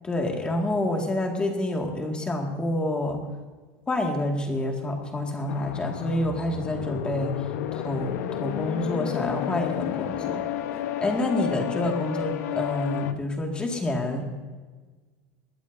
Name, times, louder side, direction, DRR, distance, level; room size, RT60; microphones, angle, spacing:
voice 1, 0.0-3.2 3.9-7.3 7.7-10.4 11.0-14.3, left 1 dB, 10° left, 2 dB, 2.0 m, -28 dB
sound 1, 5.5-13.1, left 11 dB, 80° left, 1.0 m, -31 dB
21.5 x 15.0 x 2.7 m, 1.3 s
supercardioid pair, 170°, 9 cm